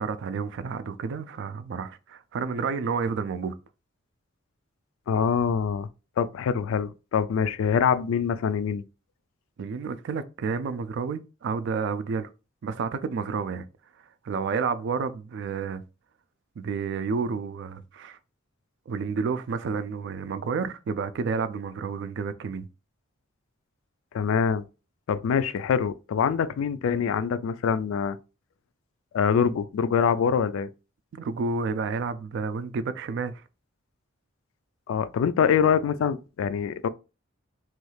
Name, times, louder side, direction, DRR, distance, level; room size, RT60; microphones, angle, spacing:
voice 1, 0.0-3.6 9.6-12.3 12.6-13.7 14.2-15.8 16.6-18.2 18.9-22.7 31.1-33.4, right 5 dB, 60° right, 0.3 m, -30 dB
voice 2, 5.1-5.9 6.2-8.8 24.1-24.6 25.1-28.2 29.1-30.7 34.9-36.9, left 7 dB, 75° left, 0.3 m, -24 dB
3.1 x 2.3 x 3.1 m
head